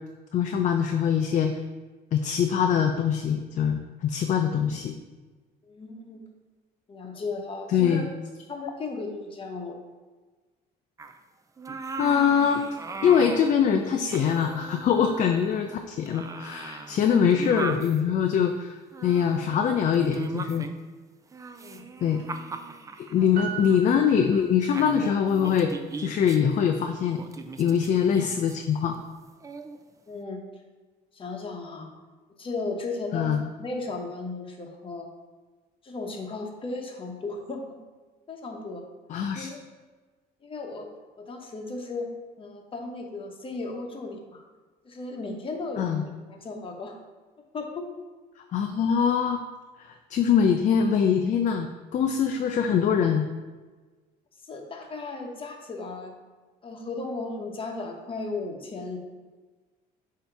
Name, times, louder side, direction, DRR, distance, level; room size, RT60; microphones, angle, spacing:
voice 1, 0.3-1.5 2.1-4.9 7.7-8.1 12.0-12.6 13.0-20.7 22.0-22.2 23.0-25.7 26.0-27.2 27.6-28.9 33.1-33.4 39.1-39.5 45.8-46.0 48.5-49.4 49.8-53.3, left 7 dB, 45° left, 5 dB, 0.4 m, -23 dB
voice 2, 5.6-6.2 6.9-8.1 8.5-9.8 16.9-17.0 21.6-21.8 23.2-23.3 30.1-30.4 31.1-31.9 32.4-33.3 33.6-35.1 35.8-37.6 38.3-38.8 39.3-39.7 40.4-40.9 41.2-42.1 42.4-44.4 44.8-47.0 47.5-47.9 54.4-56.2 56.6-59.0, left 3 dB, 30° left, 2 dB, 1.0 m, -35 dB
sound 1, 11.0-11.2 11.6-13.6 13.9-15.8 16.1-18.0 18.9-20.9 21.3-23.3 23.7-23.8 24.3-24.5 24.7-26.4 27.2-28.6 29.4-29.8, right 4 dB, 20° right, 0.4 m, -38 dB
Piano, 23.4-25.1 25.5-25.6, right 8 dB, 55° right, 0.9 m, -39 dB
7.6 x 2.9 x 4.6 m, 1.3 s
cardioid pair, 110°, 17 cm